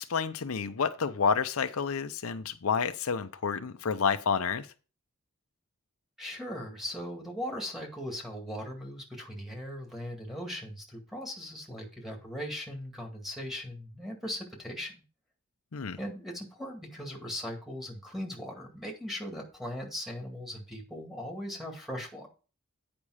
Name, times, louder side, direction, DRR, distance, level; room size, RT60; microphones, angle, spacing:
voice 1, 0.0-4.7 15.7-16.0, left 6 dB, 85° left, 10 dB, 0.6 m, -29 dB
voice 2, 6.2-15.0 16.0-22.3, equal, ahead, 0 dB, 2.0 m, -39 dB
8.7 x 5.2 x 4.8 m, 0.35 s
head